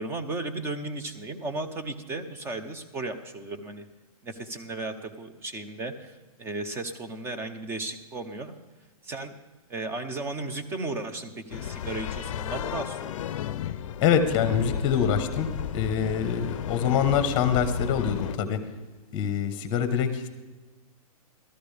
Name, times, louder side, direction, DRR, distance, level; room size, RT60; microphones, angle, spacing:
voice 1, 0.0-3.9 4.2-8.5 9.0-9.3 9.7-13.3, right 2 dB, 10° right, 8 dB, 0.7 m, -35 dB
sound 1, 11.5-18.4, left 9 dB, 55° left, 0.5 m, -33 dB
voice 2, 14.0-15.5 15.7-18.6 19.1-20.3, left 7 dB, 25° left, 9 dB, 1.0 m, -25 dB
14.0 x 13.5 x 3.4 m, 1.2 s
hypercardioid pair, 155°, 19 cm